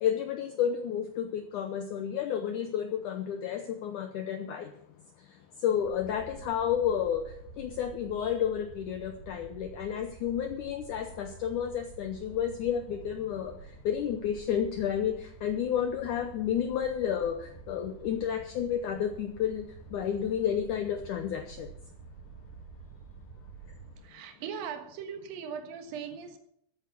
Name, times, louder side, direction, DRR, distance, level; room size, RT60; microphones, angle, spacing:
voice 1, 0.0-4.7 5.6-13.5 13.9-19.7 19.9-21.7, left 9 dB, 85° left, 6 dB, 1.7 m, -31 dB
sound 1, 5.8-23.9, right 5 dB, 85° right, 6.4 m, -49 dB
voice 2, 24.0-26.4, right 7 dB, 65° right, 6 dB, 3.0 m, -39 dB
14.0 x 9.4 x 6.1 m, 0.70 s
omnidirectional pair, 4.8 m